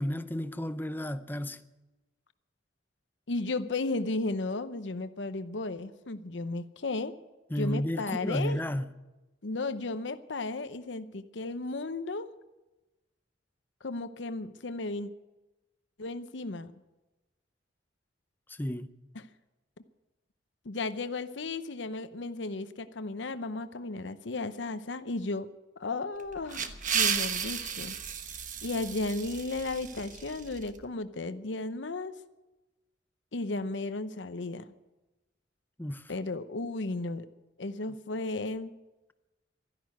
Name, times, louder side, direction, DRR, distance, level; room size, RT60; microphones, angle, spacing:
voice 1, 0.0-1.6 7.5-8.9 18.5-18.9 35.8-36.1, equal, 10° left, 0.6 m, -32 dB
voice 2, 3.3-7.1 7.6-8.6 9.4-12.3 13.8-15.1 16.0-16.7 20.6-25.5 25.8-28.0 28.6-32.1 33.3-34.7 36.1-37.3 37.6-38.7, left 2 dB, 75° left, 0.8 m, -34 dB
sound 1, 26.2-30.7, right 7 dB, 45° right, 1.1 m, -33 dB
12.5 x 11.0 x 9.4 m
head